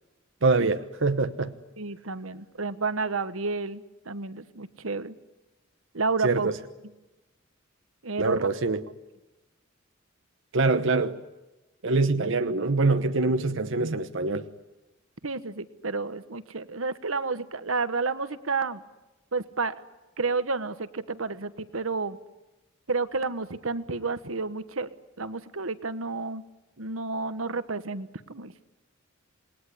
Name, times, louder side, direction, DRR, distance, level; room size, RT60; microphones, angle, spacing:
voice 1, 0.4-1.5 6.2-6.6 8.2-8.8 10.5-11.2 11.8-14.5, right 3 dB, 65° right, 1.1 m, -24 dB
voice 2, 1.8-5.1 5.9-6.5 8.0-8.5 15.2-18.8 19.3-19.7 20.2-22.2 22.9-24.9 25.2-26.4 26.8-28.5, right 4 dB, 85° right, 1.3 m, -30 dB
28.0 x 20.5 x 10.0 m
head